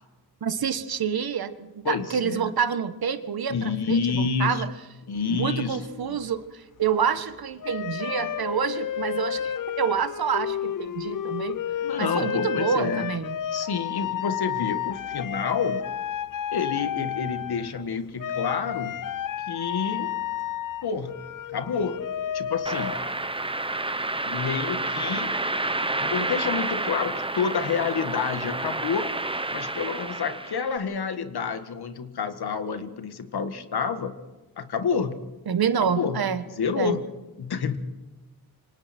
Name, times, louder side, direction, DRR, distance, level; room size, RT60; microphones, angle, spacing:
voice 1, 0.4-4.7 5.3-11.6 12.0-13.3 35.5-36.4 36.8-37.0, right 7 dB, 70° right, 10 dB, 1.6 m, -27 dB
voice 2, 1.8-2.5 3.5-4.6 5.1-6.2 11.8-13.1 13.5-16.0 16.5-19.0 19.5-20.2 20.8-21.2 21.5-22.1 22.3-23.0 24.3-25.4 26.0-29.1 29.5-34.2 34.6-35.2 35.8-37.8, left 6 dB, 80° left, 9 dB, 1.9 m, -29 dB
sound 1, 5.1-6.4 7.6-17.9 18.2-23.1, left 9 dB, 55° left, 0.7 m, -31 dB
sound 2, 22.7-30.8, right 2 dB, 15° right, 1.0 m, -29 dB
28.0 x 25.0 x 4.5 m, 1.1 s
wide cardioid pair, 95°, 38 cm